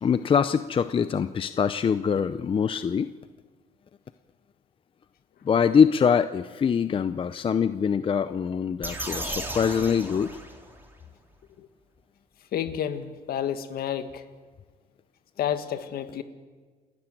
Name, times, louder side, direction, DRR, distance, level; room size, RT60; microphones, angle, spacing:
voice 1, 0.0-3.1 5.4-10.3, left 7 dB, 30° left, 12 dB, 0.6 m, -23 dB
sound 1, 8.8-10.9, right 1 dB, 10° right, 3.5 m, -35 dB
voice 2, 12.5-14.2 15.4-16.2, left 9 dB, 65° left, 9 dB, 1.8 m, -30 dB
29.0 x 13.5 x 9.1 m, 1.5 s
cardioid pair, 110°, 17 cm